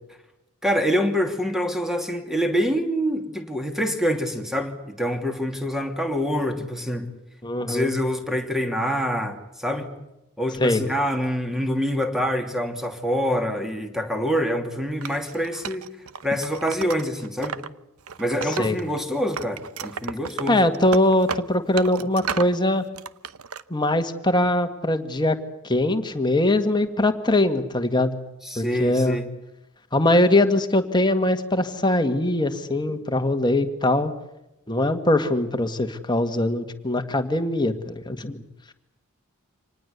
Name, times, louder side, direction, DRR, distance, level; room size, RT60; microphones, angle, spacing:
voice 1, 0.6-7.1 7.7-9.9 10.4-15.8 16.2-17.6 18.2-20.7 28.4-29.2 32.9-33.0, equal, ahead, 5 dB, 2.7 m, -26 dB
voice 2, 7.4-7.9 10.6-10.8 18.6-18.8 20.5-22.8 23.7-25.4 25.6-28.2 28.6-29.2 29.9-34.1 34.7-38.4, left 1 dB, 20° left, 7 dB, 1.9 m, -22 dB
Wood, 15.0-17.7 18.0-19.0 19.3-22.6 22.9-23.6, right 6 dB, 75° right, 0.9 m, -34 dB
26.5 x 19.5 x 8.3 m, 0.93 s
head